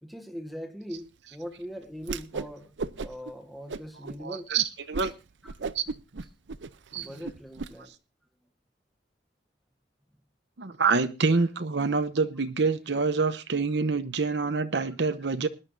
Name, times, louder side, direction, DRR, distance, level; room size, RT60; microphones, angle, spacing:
voice 1, 0.0-4.5 5.4-5.6 6.9-7.9 11.3-11.4, equal, ahead, 1.4 m, -41 dB
Whoosh swoosh swish, 2.0-2.5 2.8-3.3 3.7-4.2 4.6-4.7 4.9-5.1 5.4-7.7, right 4 dB, 90° right, 0.7 m, -35 dB
voice 2, 4.2-5.1 5.7-5.9 6.9-7.2 10.6-15.5, right 4 dB, 70° right, 0.9 m, -26 dB
20.5 x 11.0 x 2.7 m
head